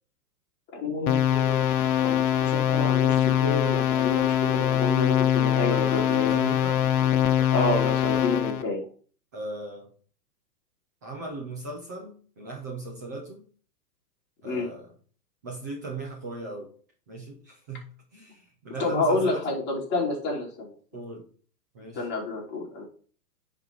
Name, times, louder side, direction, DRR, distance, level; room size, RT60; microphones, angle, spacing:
voice 1, 0.7-1.7 2.0-6.3 7.5-8.8 14.4-14.7 18.8-20.7 21.9-22.8, left 2 dB, 20° left, -3 dB, 3.2 m, -29 dB
sound 1, 1.1-8.6, left 10 dB, 60° left, 1.2 m, -23 dB
voice 2, 5.7-6.9 9.3-9.9 11.0-13.5 14.4-14.9 15.4-16.7 17.1-19.6 20.9-21.3 21.7-22.1, right 2 dB, 10° right, -1 dB, 0.4 m, -38 dB
10.0 x 4.2 x 4.5 m, 0.42 s
hypercardioid pair, 145°, 49 cm